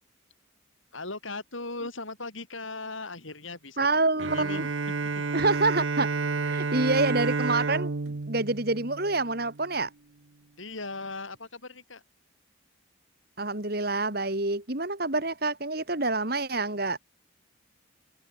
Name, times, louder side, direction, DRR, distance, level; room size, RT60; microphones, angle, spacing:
voice 1, 0.9-4.7 10.6-12.0, left 3 dB, 80° left, 7.6 m, -38 dB
voice 2, 3.8-4.7 5.3-6.1 6.4-9.9 13.4-17.0, right 2 dB, 50° right, 3.2 m, -27 dB
Bowed string instrument, 4.2-9.7, right 4 dB, 75° right, 0.9 m, -30 dB
open air
head